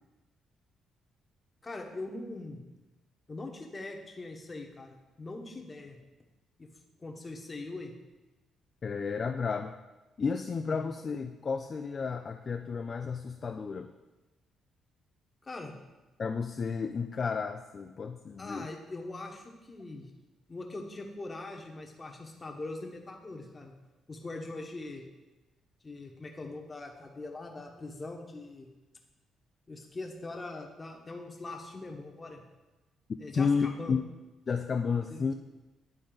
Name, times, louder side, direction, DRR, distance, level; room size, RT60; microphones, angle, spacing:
voice 1, 1.6-2.6 3.3-6.0 6.6-6.7 7.0-7.9 10.7-10.9 15.4-15.8 18.4-20.1 20.5-23.7 24.1-25.0 25.8-28.7 29.7-32.4 33.2-34.0 35.1-35.3, left 2 dB, 25° left, 2 dB, 1.1 m, -42 dB
voice 2, 8.8-9.7 10.2-13.9 16.2-18.7 33.3-34.1 34.5-35.3, left 5 dB, 40° left, 5 dB, 0.3 m, -32 dB
10.5 x 3.9 x 3.9 m, 1.1 s
cardioid pair, 90°, 0 cm